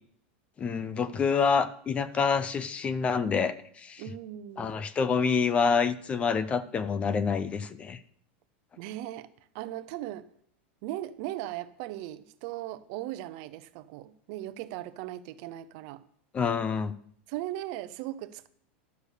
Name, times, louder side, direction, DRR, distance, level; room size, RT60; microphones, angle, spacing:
voice 1, 0.6-4.0 4.6-8.0 16.3-16.9, left 5 dB, 20° left, 0.5 m, -27 dB
voice 2, 4.0-4.7 8.8-10.3 10.8-16.0 17.3-18.5, right 14 dB, 50° right, 0.7 m, -38 dB
12.0 x 6.8 x 6.5 m
supercardioid pair, 150°, 6 cm